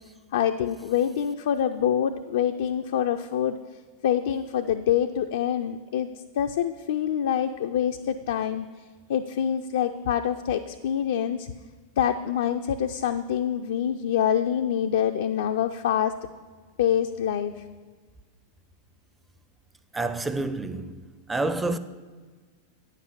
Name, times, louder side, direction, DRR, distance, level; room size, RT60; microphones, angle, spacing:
voice 1, 0.3-3.6 4.0-6.1 6.4-8.7 9.1-11.5 12.0-16.1 16.8-17.5, left 9 dB, 60° left, 0.3 m, -25 dB
voice 2, 19.9-21.0 21.3-21.8, right 2 dB, 10° right, 0.5 m, -28 dB
9.3 x 5.8 x 5.9 m
figure-of-eight pair, 90°, 0 cm